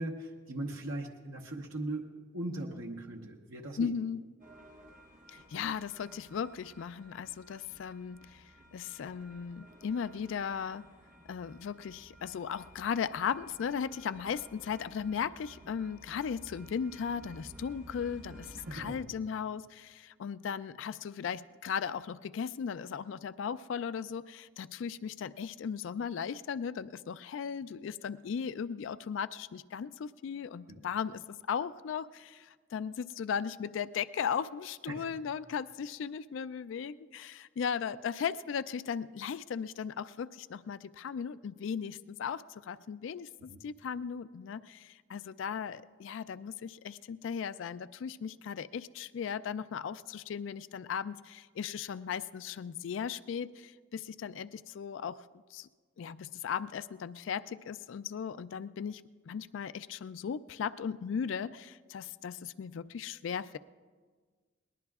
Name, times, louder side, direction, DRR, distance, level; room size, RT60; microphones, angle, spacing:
voice 1, 0.0-3.9 18.6-19.0 30.7-30.8 34.9-35.0 43.5-43.6, right 1 dB, 85° right, 1 dB, 1.0 m, -39 dB
voice 2, 3.8-4.2 5.3-8.4 8.7-10.8 11.3-55.2 55.5-55.7 56.0-63.6, left 7 dB, 75° left, 15 dB, 0.3 m, -37 dB
sound 1, 4.4-19.0, right 1 dB, 40° right, 1.2 m, -55 dB
21.5 x 19.0 x 2.4 m, 1.5 s
head